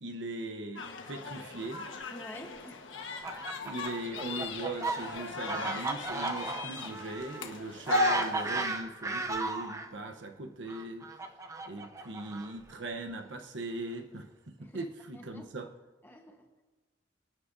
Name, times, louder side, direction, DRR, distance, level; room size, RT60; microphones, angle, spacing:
voice 1, 0.0-1.9 3.6-11.1 11.7-14.3 14.6-15.7, right 2 dB, 70° right, 5 dB, 0.9 m, -39 dB
sound 1, 0.8-8.6, left 2 dB, 85° left, 1.3 m, -36 dB
voice 2, 2.1-2.9 14.6-14.8 15.1-15.6 16.0-16.6, left 1 dB, 10° left, 2 dB, 1.1 m, -49 dB
Fowl, 3.0-9.9 10.7-12.7, right 2 dB, 15° right, 0.6 m, -35 dB
28.5 x 9.8 x 2.7 m, 1.2 s
head